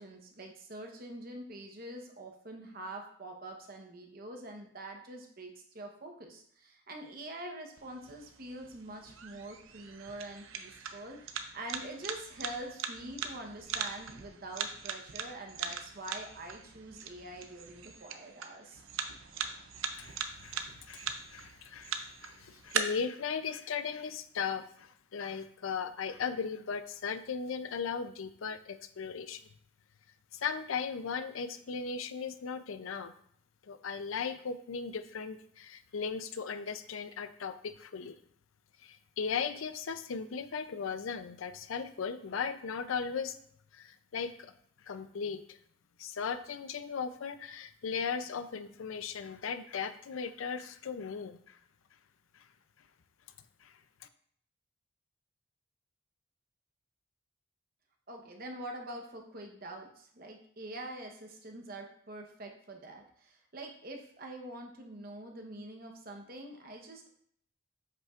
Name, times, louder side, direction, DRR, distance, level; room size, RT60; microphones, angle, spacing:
voice 1, 0.0-18.8 58.1-67.1, right 1 dB, 45° right, 3 dB, 0.9 m, -45 dB
sound 1, 7.8-22.8, right 7 dB, 80° right, 0.6 m, -41 dB
voice 2, 19.9-29.4 30.3-33.1 33.6-38.2 38.8-43.4 43.7-44.5 44.8-45.6 46.0-51.6 52.3-52.5 53.6-54.1, left 6 dB, 80° left, 10 dB, 0.5 m, -37 dB
7.7 x 5.4 x 2.4 m, 0.65 s
head